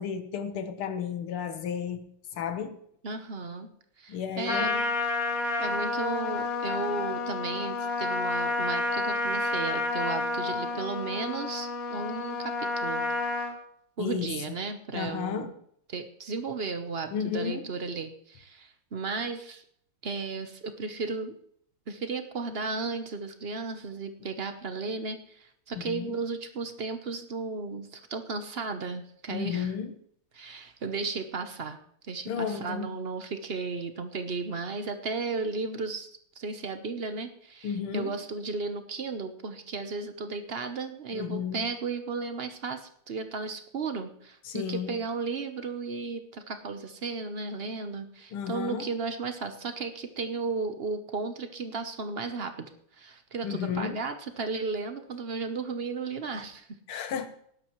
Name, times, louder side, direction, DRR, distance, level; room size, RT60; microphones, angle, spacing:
voice 1, 0.0-2.0 2.3-2.7 4.1-4.7 14.0-14.3 14.9-15.5 17.1-17.6 25.8-26.1 29.3-29.9 32.3-32.9 37.6-38.1 41.1-41.7 44.5-45.0 48.3-48.9 53.4-54.0 56.9-57.3, left 7 dB, 85° left, 9 dB, 2.0 m, -32 dB
voice 2, 3.0-3.7 4.0-4.8 5.6-13.0 14.0-15.5 15.9-19.6 20.0-21.4 21.9-29.7 30.3-31.8 32.0-36.1 36.3-56.7, right 4 dB, 45° right, 8 dB, 0.7 m, -34 dB
Trumpet, 4.5-13.5, left 3 dB, 45° left, 1.9 m, -30 dB
19.0 x 11.5 x 3.1 m, 0.67 s
omnidirectional pair, 2.3 m